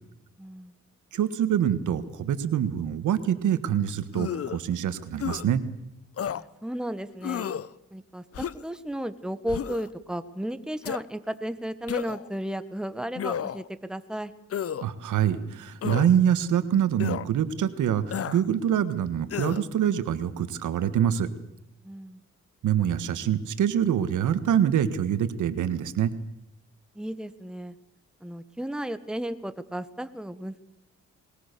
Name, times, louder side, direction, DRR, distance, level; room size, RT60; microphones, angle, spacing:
voice 1, 0.4-0.7 6.2-7.5 7.9-14.3 21.8-22.2 26.9-27.7 28.2-30.6, right 1 dB, 5° right, 11 dB, 1.5 m, -34 dB
voice 2, 1.1-5.6 14.8-21.3 22.6-26.1, right 9 dB, 80° right, 12 dB, 1.6 m, -25 dB
sound 1, 4.1-4.6 5.2-5.4 6.2-6.4 7.2-7.7 8.3-8.7 9.5-9.9 10.8-11.0 11.9-12.3 13.1-13.7 14.5-14.8 15.8-16.1 17.0-17.2 18.1-18.4 19.3-19.6, left 9 dB, 50° left, 0.9 m, -31 dB
21.5 x 21.0 x 6.8 m, 0.85 s
cardioid pair, 80°, 30 cm